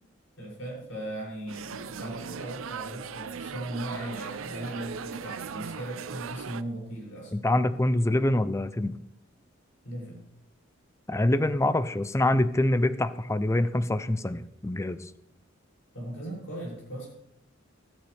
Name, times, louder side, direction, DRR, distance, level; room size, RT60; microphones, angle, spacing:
voice 1, 0.4-7.3 9.8-10.2 15.9-17.1, right 1 dB, 75° left, -3 dB, 6.8 m, -38 dB
sound 1, 1.5-6.6, right 6 dB, 80° right, 0.5 m, -38 dB
voice 2, 7.3-9.0 11.1-15.1, left 1 dB, 15° left, 13 dB, 0.5 m, -25 dB
14.5 x 14.5 x 3.4 m, 0.74 s
head